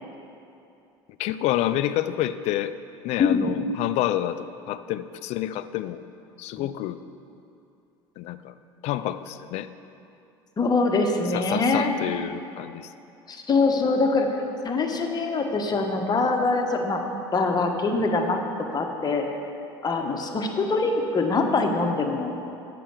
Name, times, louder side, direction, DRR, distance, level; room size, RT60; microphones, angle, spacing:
voice 1, 1.2-2.7 3.0-6.0 6.4-7.0 8.2-8.5 8.8-9.7 11.3-12.9, left 13 dB, 55° left, 13 dB, 0.4 m, -28 dB
voice 2, 3.2-3.5 10.6-11.9 13.3-14.3 14.6-17.0 17.3-18.4 18.7-19.2 19.8-22.3, left 3 dB, 30° left, 3 dB, 1.1 m, -23 dB
7.5 x 5.7 x 6.6 m, 2.7 s
hypercardioid pair, 80°, 13 cm